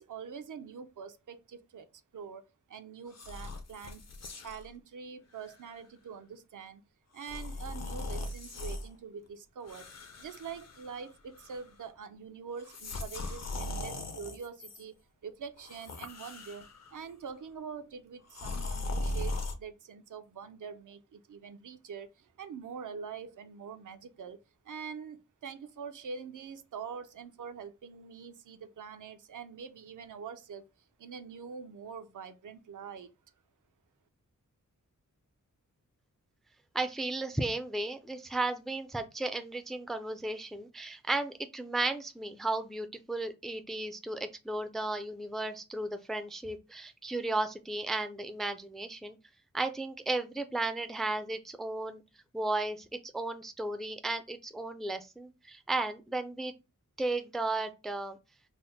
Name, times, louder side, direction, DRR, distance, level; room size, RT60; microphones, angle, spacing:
voice 1, 0.0-1.9 2.1-4.0 4.4-6.8 7.1-14.9 15.2-24.4 24.6-30.6 31.0-33.1, right 6 dB, 70° right, 0.5 m, -44 dB
sound 1, 3.1-4.7 5.3-5.5 7.2-8.9 9.6-11.1 11.4-11.8 12.6-14.8 15.6-16.9 18.3-19.5, left 2 dB, 55° left, 0.6 m, -39 dB
voice 2, 36.7-49.2 49.5-52.0 52.3-56.5 57.0-58.2, right 2 dB, ahead, 0.3 m, -34 dB
3.4 x 2.1 x 4.0 m
wide cardioid pair, 120°, 32 cm